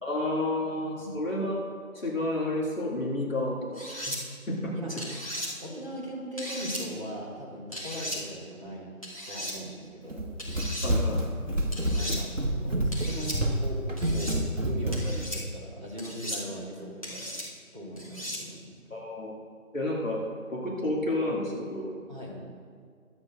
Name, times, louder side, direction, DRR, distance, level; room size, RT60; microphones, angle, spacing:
voice 1, 0.0-1.6 1.9-4.2 4.5-5.0 10.8-11.2 18.9-19.3 19.7-20.3 20.5-21.9, left 1 dB, 65° left, -3 dB, 2.3 m, -30 dB
sound 1, 3.7-4.2 5.0-5.5 6.4-6.8 7.7-8.2 9.0-9.5 10.4-10.9 11.7-12.2 12.9-13.4 14.0-14.4 14.9-15.4 16.0-16.4 17.0-17.5 18.0-18.4, equal, 25° left, 1.4 m, -36 dB
voice 2, 5.6-8.9 9.3-10.2 11.8-14.4 14.6-17.3 17.7-19.0 22.1-22.4, equal, 20° right, -9 dB, 1.6 m, -39 dB
Run, 10.1-15.3, equal, 60° right, 1.4 m, -28 dB
22.5 x 8.6 x 2.5 m, 2.1 s
figure-of-eight pair, 170°, 42 cm